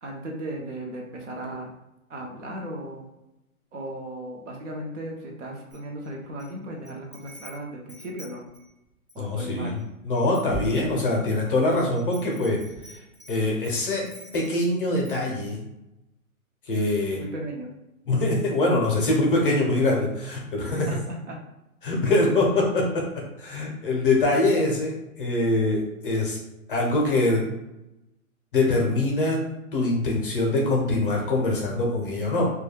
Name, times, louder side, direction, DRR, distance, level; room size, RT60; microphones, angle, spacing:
voice 1, 0.0-1.7 2.1-3.1 3.7-8.4 9.1-9.8 17.2-17.7 20.9-21.4, right 1 dB, 55° right, 0 dB, 0.7 m, -36 dB
Wind chime, 5.7-6.5 6.9-9.3 9.8-9.9 10.1-11.2 11.7-14.7 15.0-15.3, right 4 dB, 25° right, 0.4 m, -43 dB
voice 2, 9.2-12.6 13.3-14.1 14.3-15.6 16.7-17.2 18.1-20.9 21.8-26.4 26.7-27.5 28.5-29.4 29.7-32.5, left 2 dB, 40° left, -1 dB, 0.6 m, -23 dB
2.2 x 2.2 x 3.2 m, 0.93 s
hypercardioid pair, 165°, 43 cm